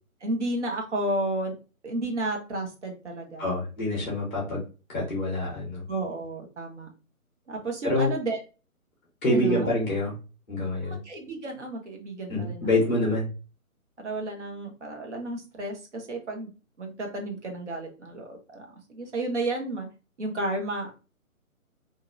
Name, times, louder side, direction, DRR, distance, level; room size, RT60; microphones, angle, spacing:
voice 1, 0.2-1.5 1.8-3.5 5.9-6.9 7.5-8.4 9.3-9.7 10.8-12.7 14.0-16.5 16.8-19.9 20.2-21.0, right 2 dB, 55° right, 1 dB, 1.0 m, -32 dB
voice 2, 3.4-4.6 4.9-5.8 7.8-8.1 9.2-10.1 10.5-11.0 12.3-13.3, left 1 dB, 10° left, -4 dB, 0.7 m, -26 dB
2.8 x 2.7 x 2.5 m, 0.34 s
figure-of-eight pair, 140°, 43 cm